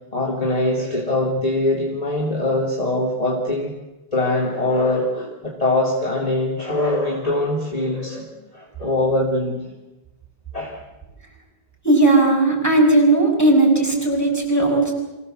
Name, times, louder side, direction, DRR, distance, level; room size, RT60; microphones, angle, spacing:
voice 1, 0.1-3.7 4.1-9.6 10.5-10.8, left 2 dB, 35° left, -1 dB, 2.7 m, -22 dB
voice 2, 11.8-14.9, right 2 dB, 15° left, -2 dB, 6.2 m, -16 dB
25.0 x 17.0 x 7.7 m, 1.1 s
omnidirectional pair, 1.1 m